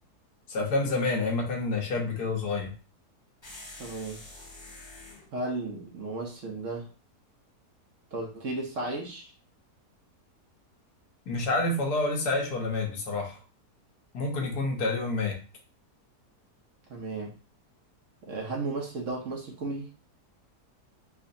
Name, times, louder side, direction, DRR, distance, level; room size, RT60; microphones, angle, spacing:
voice 1, 0.5-2.7 11.3-13.4 14.1-15.4, left 2 dB, 70° left, 1 dB, 1.4 m, -28 dB
sound 1, 3.4-5.3, left 2 dB, 20° left, 1.2 m, -46 dB
voice 2, 3.8-4.2 5.3-6.9 8.1-9.3 16.9-17.4 18.2-19.9, right 2 dB, 60° right, 0 dB, 1.1 m, -34 dB
4.9 x 2.5 x 2.6 m, 0.35 s
omnidirectional pair, 1.7 m